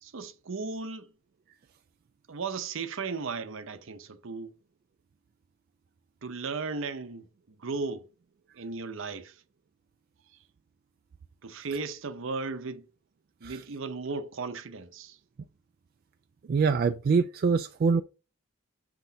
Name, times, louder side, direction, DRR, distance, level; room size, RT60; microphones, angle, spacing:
voice 1, 0.0-1.1 2.3-4.6 6.2-8.0 8.5-9.4 11.4-12.9 13.4-15.2, right 4 dB, 65° right, 0.7 m, -36 dB
voice 2, 16.5-18.0, right 5 dB, 45° right, 0.3 m, -24 dB
6.5 x 6.0 x 2.8 m
head